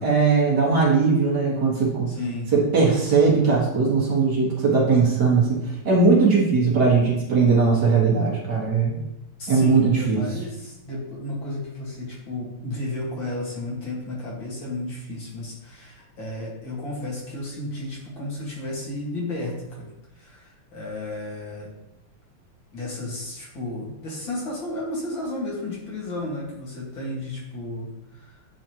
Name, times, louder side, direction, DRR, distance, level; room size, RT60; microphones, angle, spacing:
voice 1, 0.0-2.1 2.5-9.0 9.5-10.2, right 4 dB, 50° right, -4 dB, 2.1 m, -19 dB
voice 2, 2.1-2.5 9.4-21.7 22.7-28.4, left 2 dB, 65° left, -4 dB, 2.7 m, -33 dB
9.7 x 4.2 x 3.0 m, 0.88 s
omnidirectional pair, 2.4 m